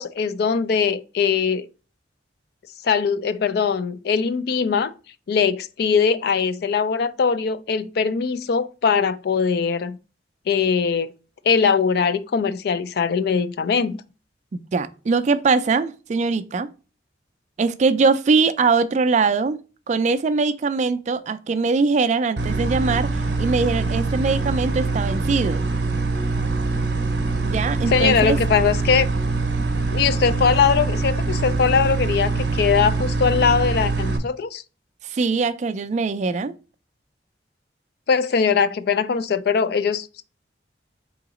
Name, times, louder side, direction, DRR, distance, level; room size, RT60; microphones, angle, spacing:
voice 1, 0.0-1.7 2.8-4.9 5.3-10.0 10.5-11.1 11.4-14.0 27.9-29.1 29.9-34.6 38.1-40.2, left 6 dB, 60° left, 0.3 m, -21 dB
voice 2, 14.5-16.7 17.6-19.6 19.9-23.1 23.4-25.7 27.4-28.4 35.0-36.5, right 4 dB, 40° right, 0.3 m, -21 dB
sound 1, 22.4-34.2, right 3 dB, 60° right, 0.7 m, -24 dB
3.9 x 2.8 x 4.8 m
head